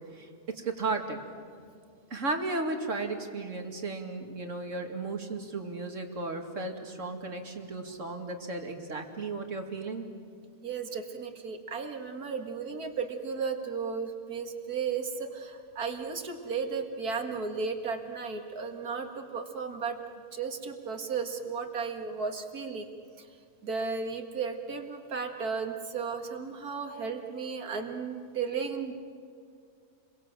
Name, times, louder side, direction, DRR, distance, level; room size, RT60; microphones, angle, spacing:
voice 1, 0.1-1.2 2.1-10.1, right 3 dB, 55° right, 3 dB, 2.6 m, -35 dB
voice 2, 10.6-20.0 20.3-22.9 23.2-23.3 23.6-28.9, right 5 dB, 75° right, 4 dB, 2.4 m, -34 dB
30.0 x 23.0 x 7.5 m, 2.3 s
omnidirectional pair, 1.6 m